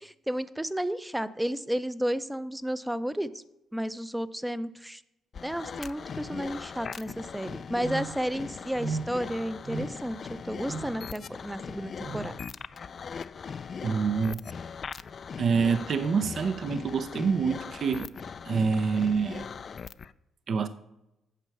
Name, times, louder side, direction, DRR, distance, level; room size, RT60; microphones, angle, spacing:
voice 1, 0.0-3.4 3.7-5.0 5.4-10.2 10.4-12.3, equal, 5° right, 0.5 m, -32 dB
sound 1, 5.3-20.1, left 6 dB, 45° left, 0.3 m, -40 dB
sound 2, 7.8-8.3 8.7-9.2 9.6-10.1 10.7-11.0 12.0-12.4, right 4 dB, 25° right, 0.8 m, -36 dB
voice 2, 13.8-14.4 15.4-18.1 18.4-19.5 20.5-20.7, right 5 dB, 55° right, 0.5 m, -26 dB
9.2 x 4.5 x 7.0 m
cardioid pair, 90°, 0 cm